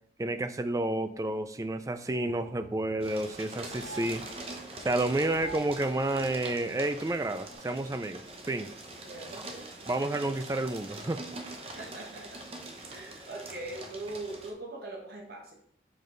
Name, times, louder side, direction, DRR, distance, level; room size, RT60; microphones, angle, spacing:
voice 1, 0.2-4.3 4.8-8.7 9.9-11.2, right 2 dB, 20° right, 10 dB, 0.3 m, -30 dB
sound 1, 1.1-1.2 1.5-1.6 2.1-3.0 3.7-4.7 5.2-6.1 7.4-7.6, right 3 dB, 85° right, 2.9 m, -48 dB
sound 2, 3.0-14.5, right 2 dB, 35° right, 0.9 m, -43 dB
voice 2, 9.0-9.9 11.6-12.6 12.9-15.5, right 2 dB, 55° right, -1 dB, 1.3 m, -42 dB
5.9 x 5.3 x 3.8 m, 0.66 s
head